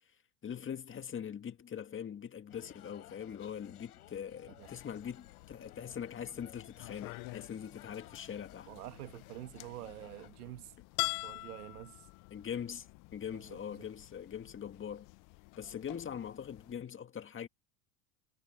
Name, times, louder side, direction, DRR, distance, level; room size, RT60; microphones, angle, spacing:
voice 1, 0.4-8.7 12.3-12.9 13.1-15.1 15.6-17.5, left 8 dB, 25° left, 2.0 m, -42 dB
sound 1, 2.5-10.3, left 15 dB, 85° left, 4.0 m, -57 dB
sound 2, 4.6-16.7, left 25 dB, 45° left, 0.6 m, -46 dB
voice 2, 8.7-10.7 11.2-12.1 13.3-13.6, right 16 dB, 80° right, 1.9 m, -47 dB
hypercardioid pair, 95°, 44 cm